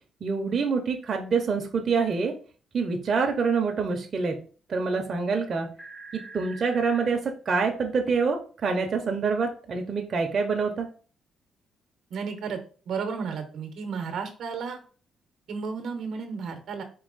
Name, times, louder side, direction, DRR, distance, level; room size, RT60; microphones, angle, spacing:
voice 1, 0.2-2.3 2.7-4.4 4.7-5.7 6.1-10.9, right 5 dB, 45° right, 2 dB, 0.8 m, -26 dB
sound 1, 5.4-5.5 5.8-7.1 8.1-8.2, right 2 dB, 20° left, 0.9 m, -43 dB
voice 2, 12.1-12.6 12.9-14.8 15.5-16.8, right 5 dB, 70° right, 6 dB, 0.9 m, -33 dB
4.7 x 2.8 x 4.0 m, 0.40 s
cardioid pair, 90°, 0 cm